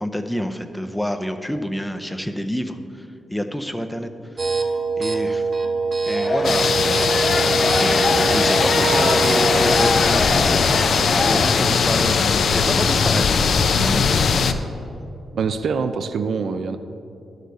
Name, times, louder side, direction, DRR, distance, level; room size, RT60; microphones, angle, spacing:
voice 1, 0.0-4.1 4.4-4.6 5.0-5.5 6.1-14.4, equal, 5° left, 7 dB, 0.5 m, -28 dB
sound 1, 4.4-9.9, right 4 dB, 55° right, 1.0 m, -23 dB
sound 2, 6.0-12.0, left 3 dB, 35° left, 1.2 m, -25 dB
sound 3, 6.4-14.5, left 5 dB, 65° left, 0.5 m, -19 dB
voice 2, 15.3-16.8, right 5 dB, 70° right, 10 dB, 0.4 m, -24 dB
11.0 x 6.5 x 4.0 m, 2.7 s
cardioid pair, 95°, 0 cm